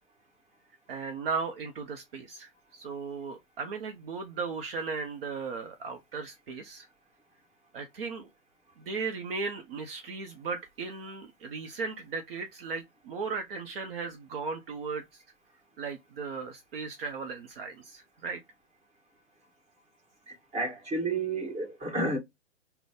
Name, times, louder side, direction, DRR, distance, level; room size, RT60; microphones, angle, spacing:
voice 1, 0.9-6.9 7.7-8.3 8.8-15.2 15.8-18.4, right 5 dB, 50° right, 0.8 m, -36 dB
voice 2, 20.3-22.2, right 2 dB, 20° right, 1.7 m, -31 dB
3.9 x 2.2 x 3.4 m
hypercardioid pair, 130°, 36 cm